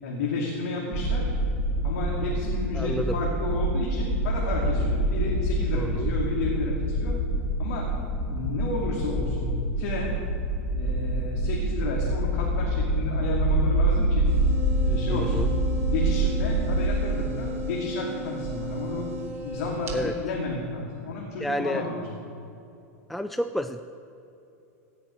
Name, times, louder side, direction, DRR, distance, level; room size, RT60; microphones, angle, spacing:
voice 1, 0.0-1.3 1.8-7.2 7.6-7.9 8.2-10.1 10.7-14.3 14.8-15.4 15.9-19.1 19.4-22.0, left 3 dB, 75° left, -2 dB, 2.5 m, -32 dB
sound 1, 0.9-16.9, right 1 dB, 20° right, 1.9 m, -26 dB
voice 2, 2.7-3.2 5.7-6.1 15.1-15.5 19.9-20.1 21.4-21.9 23.1-23.8, equal, ahead, 9 dB, 0.4 m, -30 dB
sound 2, 14.2-19.9, right 1 dB, 35° right, 2.7 m, -34 dB
16.0 x 5.9 x 8.8 m, 2.8 s
hypercardioid pair, 120°, 8 cm